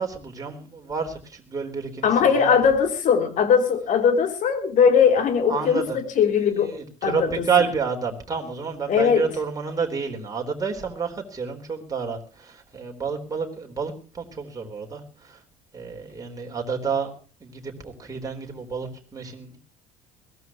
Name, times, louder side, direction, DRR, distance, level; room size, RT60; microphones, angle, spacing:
voice 1, 0.0-2.6 5.5-15.4 15.7-17.1 17.4-19.6, right 5 dB, 20° right, 1 dB, 4.1 m, -29 dB
voice 2, 2.0-6.7 7.0-7.3 8.9-9.3, left 7 dB, 50° left, 5 dB, 3.5 m, -20 dB
21.5 x 16.5 x 3.0 m, 0.36 s
hypercardioid pair, 65°, 17 cm